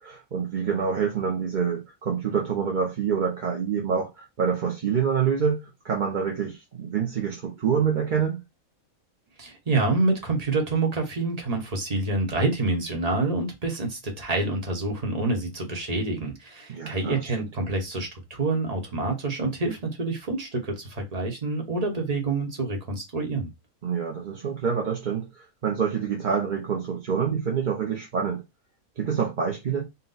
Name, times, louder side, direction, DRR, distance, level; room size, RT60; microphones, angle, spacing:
voice 1, 0.0-8.4 16.7-17.2 23.8-28.4 29.0-29.8, right 7 dB, 45° right, 0.7 m, -26 dB
voice 2, 9.4-23.5, right 2 dB, 30° right, 1.1 m, -27 dB
4.1 x 2.2 x 3.9 m
omnidirectional pair, 1.5 m